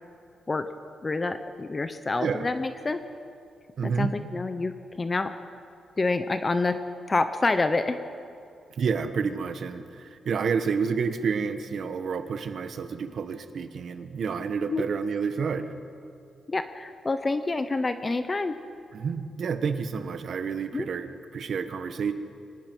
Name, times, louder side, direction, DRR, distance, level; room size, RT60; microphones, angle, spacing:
voice 1, 1.0-3.0 3.8-5.3 6.0-6.8 7.1-8.0 14.7-14.8 16.5-18.5 20.7-20.9, left 3 dB, 20° left, 10 dB, 0.7 m, -27 dB
voice 2, 3.8-4.1 8.7-15.7 18.9-22.1, right 5 dB, 50° right, 9 dB, 1.1 m, -29 dB
24.0 x 18.5 x 6.2 m, 2.5 s
wide cardioid pair, 170°, 0 cm